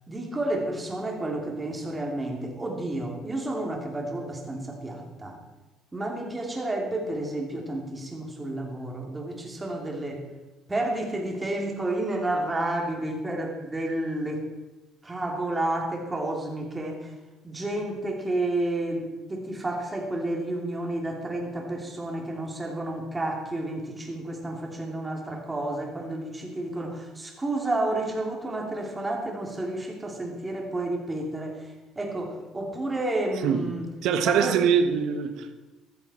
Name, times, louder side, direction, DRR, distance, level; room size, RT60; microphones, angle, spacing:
voice 1, 0.1-5.4 5.9-10.2 10.7-14.5 15.0-17.1 17.4-33.9 34.2-34.6, right 1 dB, 15° right, 1 dB, 2.9 m, -31 dB
voice 2, 33.4-33.7 34.0-35.6, right 7 dB, 70° right, 10 dB, 1.2 m, -23 dB
14.5 x 13.5 x 4.4 m, 1.1 s
cardioid pair, 135°, 0 cm